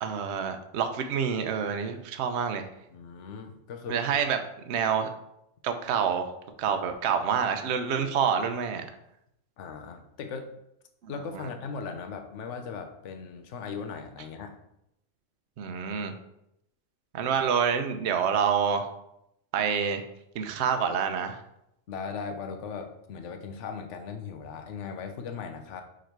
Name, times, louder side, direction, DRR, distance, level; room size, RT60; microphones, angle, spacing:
voice 1, 0.0-2.7 3.9-4.4 4.7-5.1 5.6-6.3 6.6-8.8 11.0-11.5 15.6-16.1 17.1-18.9 19.5-20.0 20.3-21.4, right 7 dB, 65° right, 7 dB, 0.9 m, -27 dB
voice 2, 2.9-4.2 9.6-10.5 11.1-14.6 21.9-25.8, left 5 dB, 70° left, 6 dB, 1.1 m, -38 dB
5.1 x 5.0 x 4.5 m, 0.80 s
omnidirectional pair, 1.3 m